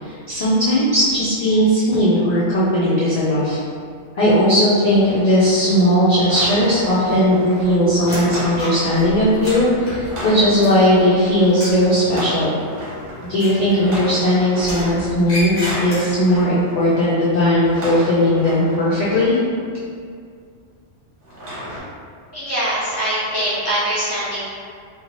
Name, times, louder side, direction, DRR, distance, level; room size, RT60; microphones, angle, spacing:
voice 1, 0.0-3.6 4.2-12.5 13.3-19.4, equal, 60° left, -9 dB, 0.4 m, -17 dB
sound 1, 4.9-19.3 21.2-21.8, equal, 75° right, 1.1 m, -34 dB
sound 2, 6.4-7.1 7.4-11.2 11.5-11.9 13.3-14.2 14.6-16.4, equal, 40° left, 0.8 m, -31 dB
voice 2, 22.3-24.4, right 1 dB, 20° right, -10 dB, 0.4 m, -22 dB
2.7 x 2.2 x 2.9 m, 2.2 s
omnidirectional pair, 1.2 m